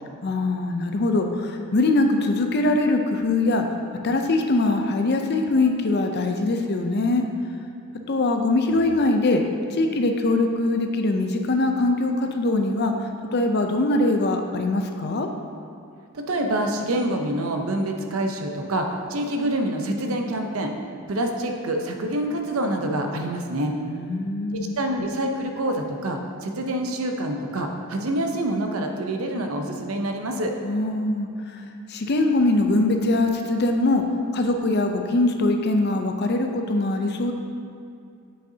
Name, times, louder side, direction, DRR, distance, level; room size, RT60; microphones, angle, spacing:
voice 1, 0.2-3.6 4.0-7.3 8.1-9.4 9.7-15.3 23.9-24.8 30.6-34.0 34.3-37.3, left 2 dB, 45° left, 4 dB, 0.5 m, -22 dB
voice 2, 16.1-20.7 21.1-23.7 24.5-30.5, right 1 dB, 70° right, 4 dB, 0.7 m, -26 dB
7.7 x 6.4 x 2.8 m, 2.4 s
head